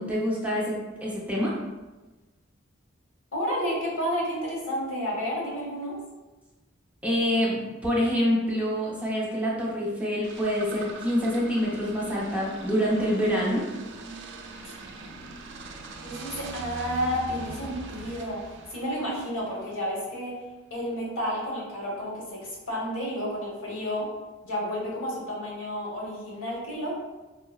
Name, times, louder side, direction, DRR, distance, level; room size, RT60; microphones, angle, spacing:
voice 1, 0.0-1.5 7.0-13.6, equal, 5° right, -5 dB, 0.6 m, -26 dB
voice 2, 3.3-6.0 16.0-20.3 20.7-24.1 24.4-27.0, equal, 80° left, -4 dB, 1.0 m, -31 dB
sound 1, 10.2-19.8, right 2 dB, 60° right, 0.4 m, -40 dB
4.6 x 2.0 x 2.3 m, 1.1 s
head